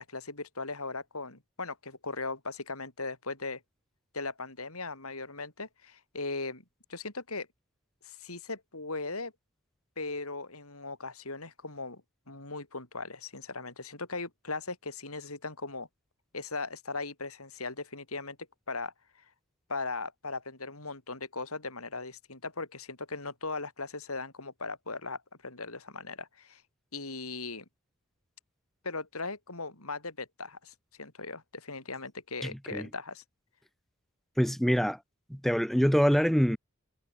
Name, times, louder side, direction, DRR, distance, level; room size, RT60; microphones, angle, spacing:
voice 1, 0.0-3.6 4.1-6.6 6.9-7.5 8.0-9.3 10.0-12.0 12.3-15.9 16.3-18.4 18.7-18.9 19.7-26.6 26.9-27.7 28.8-33.2, left 3 dB, 85° left, 6.9 m, -38 dB
voice 2, 32.4-32.9 34.4-35.0 35.3-36.6, equal, ahead, 1.1 m, -25 dB
head